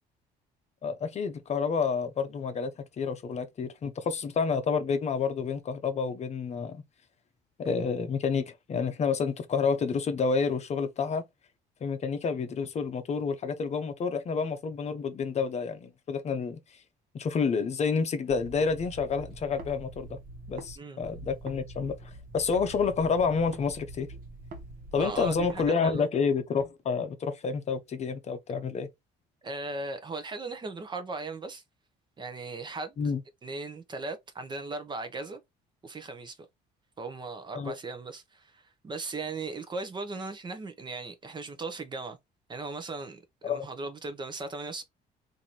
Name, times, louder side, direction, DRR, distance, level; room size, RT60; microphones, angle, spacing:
voice 1, 0.8-2.7 3.0-6.8 7.6-11.2 11.8-16.6 17.1-20.2 20.5-24.1 24.9-28.9 33.0-33.2 37.5-37.7 43.4-43.7, left 5 dB, 40° left, 0.7 m, -29 dB
sound 1, 18.3-20.7 21.0-25.7, right 2 dB, 55° right, 1.2 m, -45 dB
voice 2, 24.9-26.1 29.4-31.6 32.2-32.9 33.4-35.4 35.8-36.4 37.0-42.2 42.5-44.8, right 3 dB, 25° right, 0.7 m, -37 dB
3.0 x 2.7 x 4.0 m
cardioid pair, 110°, 17 cm